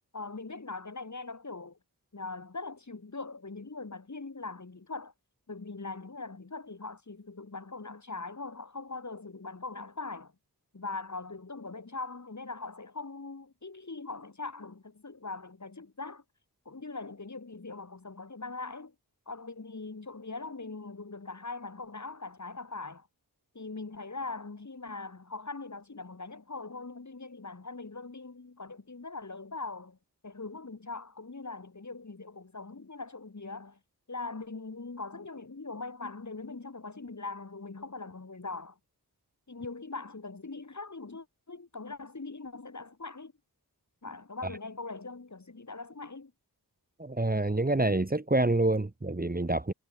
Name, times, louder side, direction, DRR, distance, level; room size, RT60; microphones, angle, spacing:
voice 1, 0.1-1.8 2.1-5.1 5.5-10.3 10.7-16.2 16.7-18.9 19.3-23.1 23.5-30.0 30.2-33.8 34.1-38.8 39.5-43.3 44.0-46.3, left 3 dB, 45° left, 2.2 m, -41 dB
voice 2, 47.0-49.7, right 2 dB, 25° right, 1.2 m, -27 dB
wide cardioid pair, 65°, 39 cm